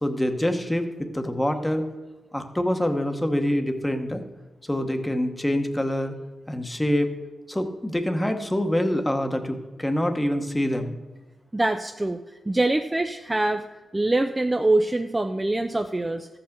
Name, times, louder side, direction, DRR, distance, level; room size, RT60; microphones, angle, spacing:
voice 1, 0.0-1.9 2.3-4.2 4.6-6.1 6.5-7.1 7.5-10.9, left 1 dB, 10° left, 6 dB, 1.0 m, -25 dB
voice 2, 11.5-12.2 12.5-13.7 13.9-16.3, right 2 dB, 15° right, 6 dB, 0.4 m, -24 dB
14.0 x 5.8 x 6.6 m, 1.2 s
wide cardioid pair, 130°, 0 cm